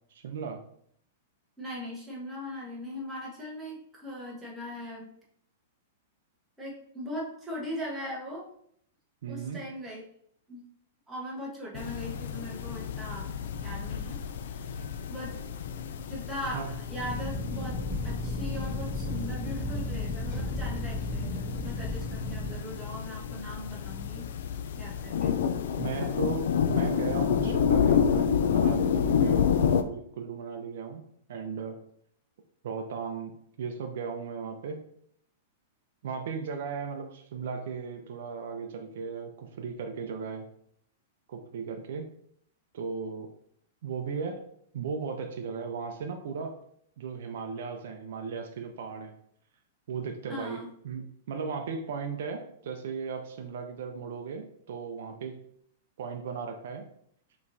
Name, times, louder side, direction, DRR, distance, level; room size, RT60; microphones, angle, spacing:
voice 1, 0.1-0.6 9.2-9.6 16.5-16.7 25.8-31.8 32.6-34.8 36.0-40.5 41.3-42.1 42.7-43.3 43.8-44.4 44.7-46.6 47.0-49.1 49.9-55.4 56.0-56.8, right 5 dB, 65° right, 5 dB, 0.5 m, -36 dB
voice 2, 1.6-5.1 6.6-8.5 9.3-10.0 10.5-10.7 11.1-13.3 13.6-14.7 15.1-15.3 16.1-17.8 18.0-24.3 24.8-25.4 50.3-50.7, left 1 dB, 5° right, -5 dB, 1.1 m, -39 dB
sound 1, 11.7-29.8, left 7 dB, 70° left, 0.3 m, -29 dB
sound 2, 17.0-22.5, left 1 dB, 25° left, 0.9 m, -34 dB
5.5 x 3.1 x 2.7 m, 0.67 s
supercardioid pair, 160°, 0 cm